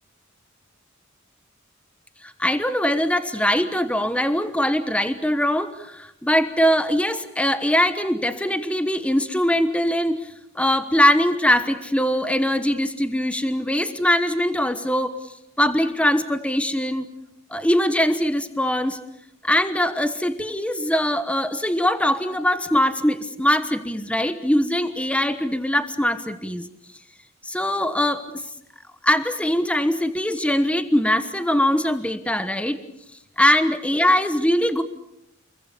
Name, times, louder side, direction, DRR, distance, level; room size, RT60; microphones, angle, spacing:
voice 1, 2.2-15.2 15.6-17.1 17.5-19.0 19.4-26.7 27.4-28.4 29.0-32.8 33.4-34.8, left 1 dB, 5° left, 10 dB, 1.2 m, -22 dB
29.0 x 22.5 x 6.9 m, 0.82 s
head